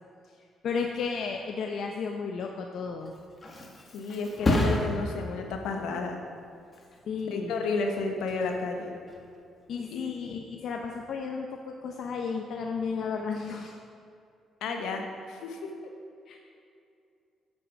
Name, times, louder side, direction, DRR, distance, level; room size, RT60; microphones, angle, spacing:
voice 1, 0.6-3.1 7.1-7.5 9.7-13.8 16.3-16.4, left 5 dB, 65° left, 2 dB, 0.7 m, -33 dB
Thump thud, 2.9-10.3 10.7-11.2, left 2 dB, 30° left, 1.7 m, -33 dB
voice 2, 3.9-6.2 7.2-8.9 9.9-10.0 14.6-15.7, left 3 dB, 85° left, 3 dB, 1.2 m, -32 dB
8.4 x 7.6 x 6.0 m, 2.4 s
cardioid pair, 90°, 0 cm